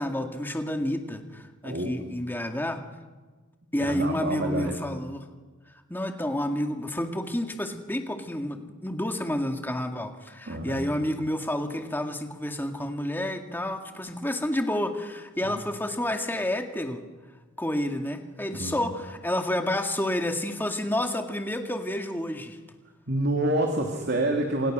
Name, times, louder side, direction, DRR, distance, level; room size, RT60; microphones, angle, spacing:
voice 1, 0.0-2.8 3.7-5.3 5.9-17.0 17.6-22.6, left 1 dB, 10° left, 4 dB, 2.1 m, -30 dB
voice 2, 1.6-2.0 3.8-4.8 10.4-10.9 15.4-15.6 18.6-18.7 23.1-24.7, right 1 dB, 55° right, 3 dB, 2.9 m, -27 dB
29.0 x 27.0 x 6.5 m, 1.3 s
head